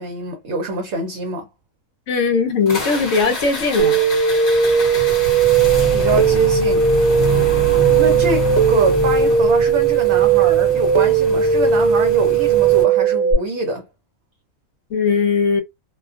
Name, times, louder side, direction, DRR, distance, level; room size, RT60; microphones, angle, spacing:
voice 1, 0.0-1.5 5.9-6.8 8.0-13.8, right 2 dB, 65° right, 0.8 m, -24 dB
voice 2, 2.1-4.0 14.9-15.6, left 5 dB, 70° left, 1.0 m, -19 dB
sound 1, 2.7-12.8, left 2 dB, 45° left, 1.0 m, -26 dB
sound 2, 3.8-13.3, right 7 dB, 30° right, 0.8 m, -16 dB
2.4 x 2.3 x 2.3 m
omnidirectional pair, 1.4 m